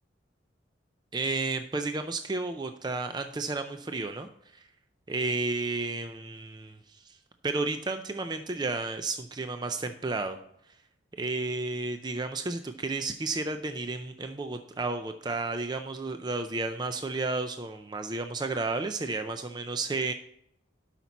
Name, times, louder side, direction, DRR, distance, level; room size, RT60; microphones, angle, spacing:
voice 1, 1.1-4.7 5.1-7.2 7.4-10.4 11.1-20.1, right 3 dB, 20° right, 7 dB, 0.4 m, -32 dB
12.0 x 5.9 x 4.1 m, 0.74 s
head